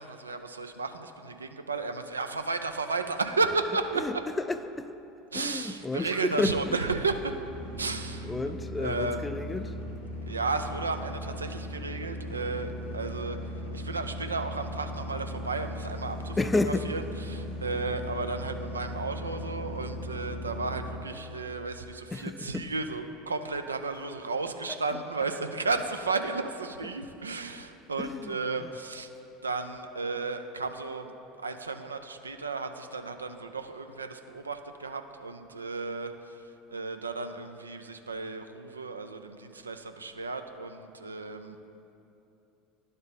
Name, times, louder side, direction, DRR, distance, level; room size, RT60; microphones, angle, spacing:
voice 1, 0.0-4.0 5.3-7.4 7.8-8.3 8.8-9.2 10.3-13.4 13.7-16.4 16.9-17.0 17.3-29.1 29.4-31.1 31.4-36.4 36.7-41.6, right 3 dB, 85° right, 0.3 m, -33 dB
voice 2, 4.0-5.0 5.3-6.8 8.2-9.8 16.4-16.9 22.1-22.7 24.7-24.8 28.0-28.7, left 2 dB, 15° left, 0.3 m, -31 dB
sound 1, 7.4-21.0, left 1 dB, 75° left, 1.3 m, -38 dB
11.0 x 4.0 x 3.5 m
figure-of-eight pair, 75°, 0 cm